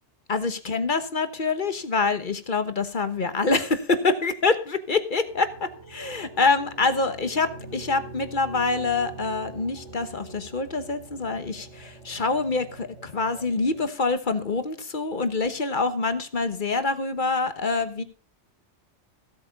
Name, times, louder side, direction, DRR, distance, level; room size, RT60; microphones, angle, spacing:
voice 1, 0.3-5.5 5.9-18.0, left 3 dB, 45° left, 11 dB, 1.3 m, -25 dB
sound 1, 5.3-13.9, right 2 dB, 90° right, 3.0 m, -44 dB
15.5 x 8.3 x 5.2 m, 0.39 s
omnidirectional pair, 1.2 m